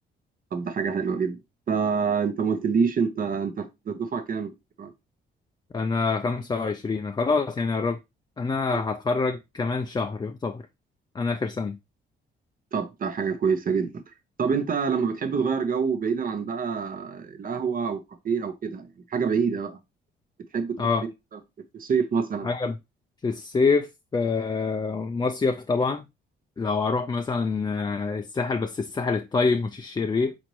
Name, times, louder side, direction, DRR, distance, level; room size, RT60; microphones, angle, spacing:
voice 1, 0.5-1.4 1.7-4.5 4.8-4.9 8.7-8.8 12.7-13.9 14.4-19.8 20.5-20.9 21.7-22.5, right 6 dB, 45° right, 0.9 m, -26 dB
voice 2, 5.7-8.0 8.4-10.6 11.1-11.8 20.8-21.0 22.4-22.8 23.2-26.1 26.6-30.4, left 4 dB, 20° left, 0.4 m, -26 dB
4.3 x 4.1 x 3.0 m
cardioid pair, 90°, 20 cm